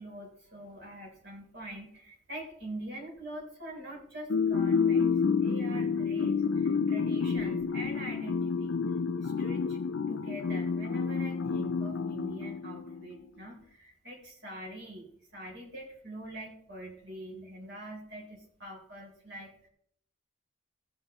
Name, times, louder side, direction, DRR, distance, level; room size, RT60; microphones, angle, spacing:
voice 1, 0.0-8.8 9.2-9.8 10.1-19.7, right 1 dB, 65° right, -2 dB, 3.7 m, -44 dB
sound 1, 4.3-13.1, left 5 dB, 85° left, 0.5 m, -29 dB
15.5 x 10.0 x 3.0 m, 0.68 s
head